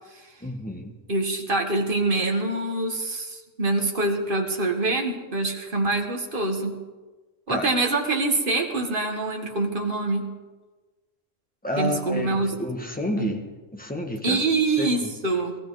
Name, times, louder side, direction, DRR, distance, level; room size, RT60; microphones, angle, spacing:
voice 1, 0.4-1.0 7.5-7.7 11.6-14.4 14.8-15.1, left 1 dB, 5° left, 2 dB, 1.5 m, -30 dB
voice 2, 1.1-6.8 7.5-10.3 11.8-12.5 13.2-13.3 14.2-15.6, right 2 dB, 40° right, 2 dB, 1.9 m, -25 dB
21.5 x 14.5 x 4.1 m, 1.3 s
omnidirectional pair, 1.3 m